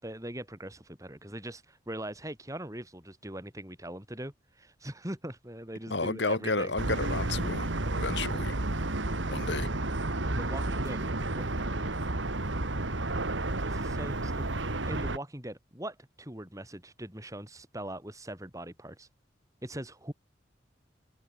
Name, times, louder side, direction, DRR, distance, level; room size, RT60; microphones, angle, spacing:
voice 1, 0.0-6.7 10.3-11.8 13.6-14.4 14.9-19.1 19.6-20.1, right 1 dB, 15° right, 4.9 m, -41 dB
voice 2, 5.9-7.7 8.0-8.5 9.3-9.7, left 3 dB, 70° left, 2.3 m, -31 dB
sound 1, 6.8-15.2, right 2 dB, 90° right, 2.3 m, -31 dB
head